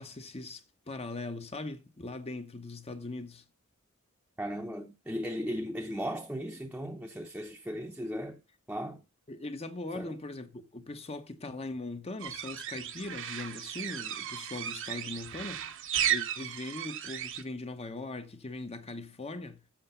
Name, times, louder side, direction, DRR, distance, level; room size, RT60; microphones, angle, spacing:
voice 1, 0.0-3.4 9.3-15.6 16.1-19.6, left 2 dB, 30° left, 0.8 m, -40 dB
voice 2, 4.4-8.4 8.7-9.0 9.9-10.1, equal, 5° right, 0.8 m, -36 dB
sound 1, 12.2-17.4, right 10 dB, 60° right, 0.9 m, -35 dB
7.5 x 6.4 x 6.8 m
head